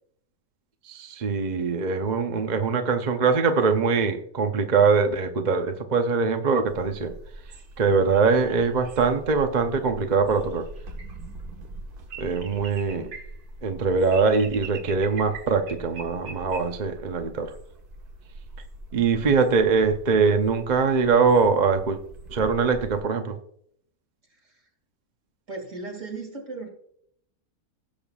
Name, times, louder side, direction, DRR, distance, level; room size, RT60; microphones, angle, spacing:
voice 1, 0.8-7.1 7.8-10.7 12.2-13.1 13.6-17.6 18.9-22.0 22.3-23.4, right 5 dB, 40° right, 5 dB, 0.7 m, -22 dB
sound 1, 6.7-23.0, right 2 dB, 90° right, 1.9 m, -42 dB
voice 2, 19.2-19.9 24.3-24.7 25.5-26.7, right 2 dB, 55° right, 2 dB, 2.9 m, -38 dB
17.0 x 6.9 x 2.4 m, 0.66 s
omnidirectional pair, 1.6 m